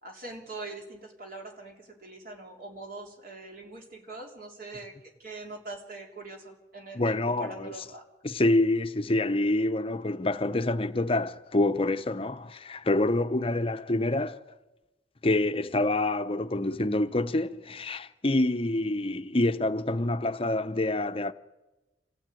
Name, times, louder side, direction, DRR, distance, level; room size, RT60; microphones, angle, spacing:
voice 1, 0.0-4.9 5.2-8.0, right 2 dB, 50° right, 3.7 m, -43 dB
voice 2, 6.9-7.7 8.2-14.4 15.2-21.3, left 2 dB, 30° left, 0.8 m, -27 dB
27.0 x 15.0 x 9.2 m
head